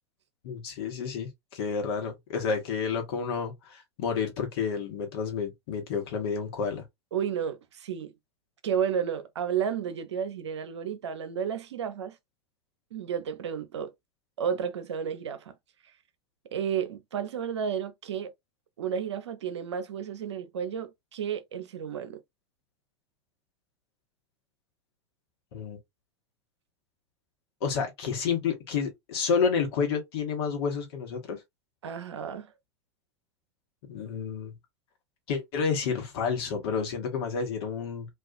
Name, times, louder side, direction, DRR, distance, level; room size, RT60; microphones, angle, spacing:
voice 1, 0.4-6.8 25.5-25.8 27.6-31.4 33.9-34.5 35.3-38.1, left 6 dB, 60° left, 1.0 m, -30 dB
voice 2, 7.1-8.1 8.6-12.2 12.9-13.9 14.4-15.5 16.5-18.3 18.8-22.2 31.8-32.5, right 8 dB, 75° right, 0.5 m, -32 dB
2.4 x 2.3 x 2.5 m
figure-of-eight pair, 85°, 15 cm